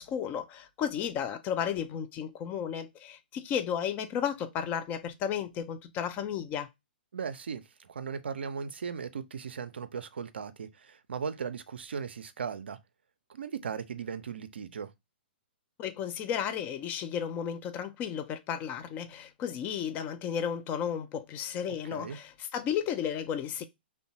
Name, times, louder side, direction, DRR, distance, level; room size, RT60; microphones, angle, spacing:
voice 1, 0.0-6.7 15.8-23.6, left 8 dB, 30° left, 0.4 m, -33 dB
voice 2, 7.1-12.8 13.3-14.9 21.9-22.2, right 6 dB, 80° right, 0.4 m, -37 dB
2.9 x 2.1 x 2.7 m
hypercardioid pair, 125°, 6 cm